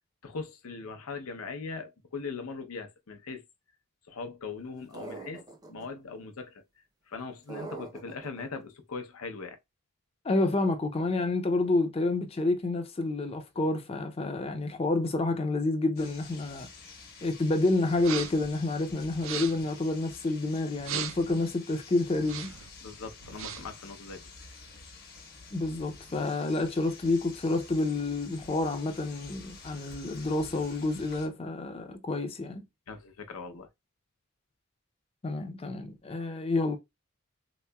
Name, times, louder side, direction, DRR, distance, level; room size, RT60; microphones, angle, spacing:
voice 1, 0.2-3.4 4.1-6.6 7.1-9.6 22.8-24.2 32.9-33.7, left 4 dB, 90° left, 0.7 m, -40 dB
sound 1, 4.9-5.9 7.5-8.4, right 3 dB, 20° right, 0.5 m, -42 dB
voice 2, 10.2-16.7 17.2-22.5 25.5-32.6 35.2-36.8, left 2 dB, 25° left, 0.5 m, -29 dB
sound 2, 16.0-31.3, left 4 dB, 45° left, 0.9 m, -49 dB
sound 3, 18.0-18.5 19.1-19.7 20.8-21.3 22.2-22.7 23.2-23.8, right 9 dB, 70° right, 0.4 m, -37 dB
3.7 x 3.0 x 2.2 m
head